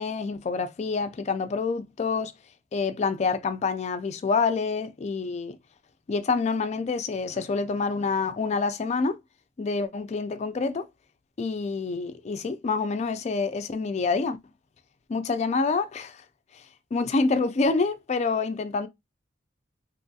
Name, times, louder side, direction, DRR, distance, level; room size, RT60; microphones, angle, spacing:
voice 1, 0.0-2.3 2.7-5.6 6.1-9.2 9.6-10.9 11.4-14.4 15.1-16.2 16.9-18.9, left 4 dB, 35° left, 0.3 m, -27 dB
3.0 x 2.2 x 2.6 m
head